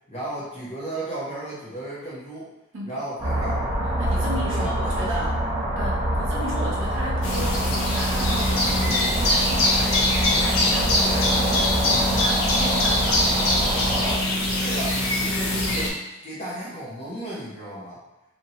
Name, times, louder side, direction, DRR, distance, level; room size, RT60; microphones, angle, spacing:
voice 1, 0.1-2.5 2.8-3.6 4.4-4.7 5.0-5.3 14.6-18.0, right 1 dB, 30° left, -8 dB, 0.6 m, -34 dB
sound 1, 3.2-14.2, right 1 dB, 15° right, 0.6 m, -26 dB
voice 2, 4.0-5.3 5.8-13.5, right 1 dB, 65° right, -4 dB, 0.8 m, -35 dB
sound 2, 7.2-15.9, left 1 dB, 80° left, 0.6 m, -23 dB
2.9 x 2.7 x 2.8 m, 0.96 s
head